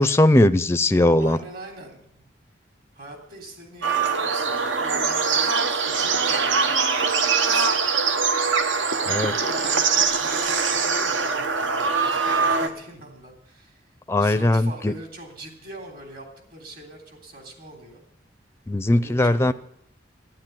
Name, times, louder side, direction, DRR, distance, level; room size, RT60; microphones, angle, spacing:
voice 1, 0.0-1.4 9.1-9.3 14.1-14.9 18.7-19.5, left 1 dB, 15° left, 13 dB, 0.5 m, -19 dB
voice 2, 1.2-2.3 2.9-6.8 9.0-13.9 14.2-18.0 18.9-19.5, right 1 dB, 55° right, 3 dB, 3.3 m, -42 dB
sound 1, 3.8-12.7, right 5 dB, 80° right, 1.2 m, -22 dB
12.0 x 9.9 x 9.1 m, 0.72 s
head